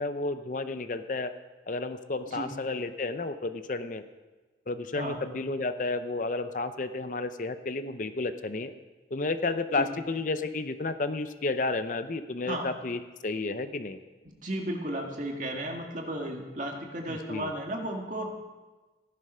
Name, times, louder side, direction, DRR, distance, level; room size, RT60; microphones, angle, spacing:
voice 1, 0.0-1.3 1.7-4.0 4.7-8.7 9.1-14.0 17.1-17.5, left 3 dB, 45° left, 10 dB, 0.6 m, -32 dB
voice 2, 14.3-18.3, right 1 dB, 45° right, 1 dB, 2.0 m, -34 dB
15.5 x 11.0 x 5.6 m, 1.3 s
head